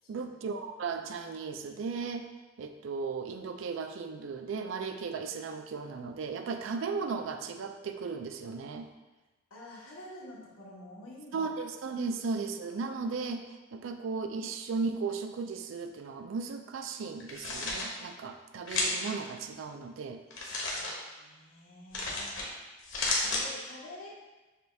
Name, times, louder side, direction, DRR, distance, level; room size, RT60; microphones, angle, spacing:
voice 1, 0.1-2.3 2.6-8.9 11.3-20.2, right 4 dB, 70° right, 7 dB, 0.4 m, -36 dB
voice 2, 9.5-11.4 20.4-20.9 21.1-22.3 23.1-24.1, left 1 dB, 90° left, -4 dB, 1.2 m, -48 dB
sound 1, 17.2-17.9 18.7-19.1 20.3-20.9 21.9-22.5 22.8-23.4, left 2 dB, 60° left, 0.9 m, -32 dB
6.6 x 2.3 x 3.3 m, 1.1 s
head